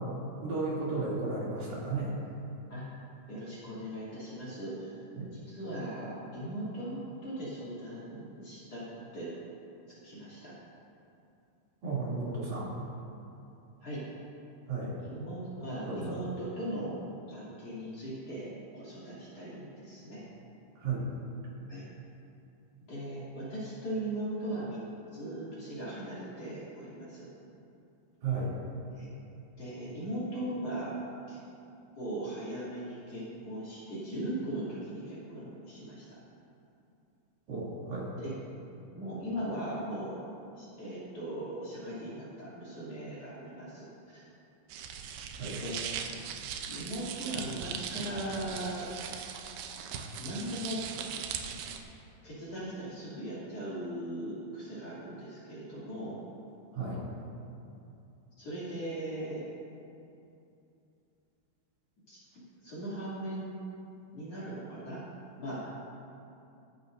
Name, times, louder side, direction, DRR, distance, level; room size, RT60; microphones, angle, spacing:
voice 1, 0.4-2.2 5.2-5.3 11.8-12.7 14.7-15.0 15.8-16.2 20.8-21.1 28.2-28.6 37.5-38.1 45.4-45.6 56.7-57.0, right 3 dB, 60° right, -7 dB, 4.6 m, -33 dB
voice 2, 2.7-4.9 5.5-9.3 10.0-10.5 13.8-14.0 15.0-16.9 17.3-18.5 18.7-20.2 21.7-21.8 22.9-24.8 25.1-27.3 28.9-29.1 29.6-30.9 31.3-31.4 31.9-36.1 38.2-38.3 38.9-40.2 40.5-44.3 45.6-45.9 46.7-48.9 50.2-50.8 52.2-56.2 58.4-59.4 62.1-62.2 62.6-63.6 64.1-65.0 65.4-65.7, right 1 dB, 40° left, -10 dB, 3.7 m, -39 dB
sound 1, 44.7-51.8, right 7 dB, 85° right, 2.6 m, -39 dB
22.0 x 10.5 x 2.7 m, 2.7 s
omnidirectional pair, 4.6 m